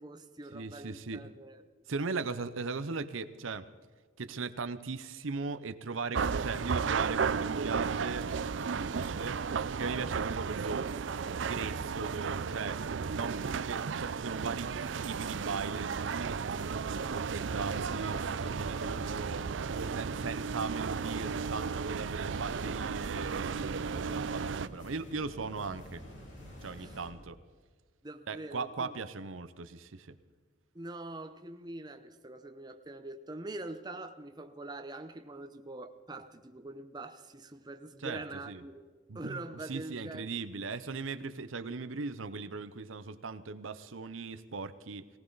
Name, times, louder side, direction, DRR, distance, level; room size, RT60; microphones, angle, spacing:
voice 1, 0.0-1.6 26.8-27.0 28.0-28.9 30.7-38.9 39.1-40.4, right 2 dB, 20° right, 6 dB, 0.9 m, -44 dB
voice 2, 0.5-1.2 1.9-3.7 4.2-8.3 8.6-9.4 9.7-10.9 11.4-12.8 13.1-14.7 15.0-18.2 18.6-19.4 19.7-26.0 26.6-27.4 28.3-30.1 38.0-38.6 39.1-39.4 39.7-45.1, right 4 dB, 85° right, 12 dB, 0.8 m, -38 dB
sound 1, 6.1-24.7, right 5 dB, 65° right, 0.5 m, -34 dB
sound 2, 17.3-27.1, equal, 65° left, 4.3 m, -49 dB
19.0 x 18.5 x 4.0 m, 1.5 s
head